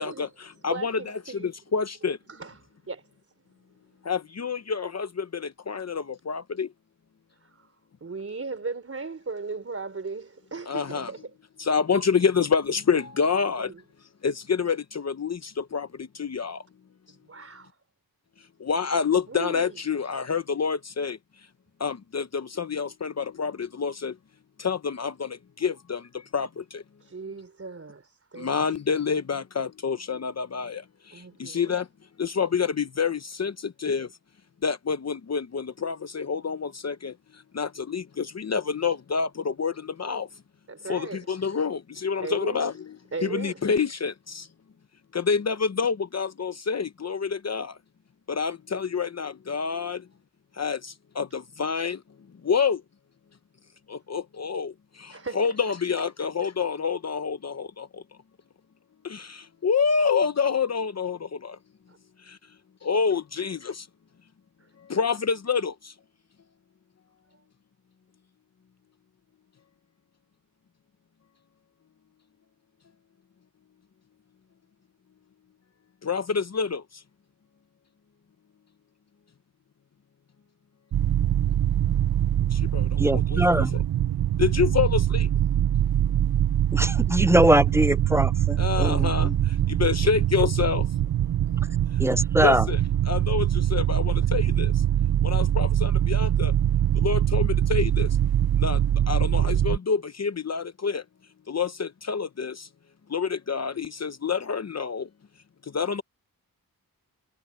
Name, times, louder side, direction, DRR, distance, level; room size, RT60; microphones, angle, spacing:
voice 1, 0.0-2.2 4.0-6.7 10.7-11.1 11.6-13.7 14.2-16.6 18.6-21.2 21.8-24.2 24.6-26.8 28.4-31.9 32.2-34.1 34.6-40.3 40.9-43.0 43.2-44.5 45.1-47.8 48.3-50.1 50.5-52.0 52.4-52.8 53.9-58.0 59.0-61.6 62.2-62.4 62.8-63.9 64.8-65.9 76.0-77.0 81.5-81.6 82.5-83.7 84.4-85.3 88.6-90.9 91.9-92.0 92.4-92.8 93.1-94.8 95.2-96.5 96.9-98.2 98.6-101.0 101.5-102.7 103.1-105.1 105.6-106.0, left 6 dB, 50° left, 0.8 m, -28 dB
voice 2, 0.6-1.5 2.3-3.1 7.4-7.7 8.0-11.3 13.6-13.8 17.2-17.8 19.3-19.8 27.0-28.7 31.1-31.8 40.7-41.3 42.2-42.7 43.1-43.7 55.1-55.6 61.9-62.0 62.3-62.4 64.6-64.7 67.3-67.4, right 4 dB, 40° right, 3.8 m, -37 dB
sound 1, 80.9-99.8, right 11 dB, 85° right, 0.6 m, -23 dB
voice 3, 83.0-83.8 86.7-89.3 92.0-92.7, right 1 dB, 10° right, 0.4 m, -22 dB
wide cardioid pair, 130°, 35 cm